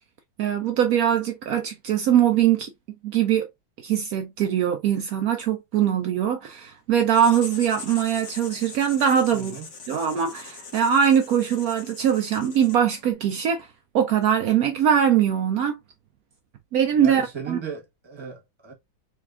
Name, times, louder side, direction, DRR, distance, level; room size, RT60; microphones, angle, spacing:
voice 1, 0.4-2.7 3.0-3.5 3.8-9.6 9.9-13.7 13.9-15.8 16.7-17.6, right 9 dB, 85° right, 0.7 m, -22 dB
Writing, 7.1-13.1, left 4 dB, 45° left, 1.1 m, -41 dB
voice 2, 9.3-9.6 17.0-18.7, right 6 dB, 20° right, 1.0 m, -36 dB
3.9 x 3.3 x 2.4 m
omnidirectional pair, 2.2 m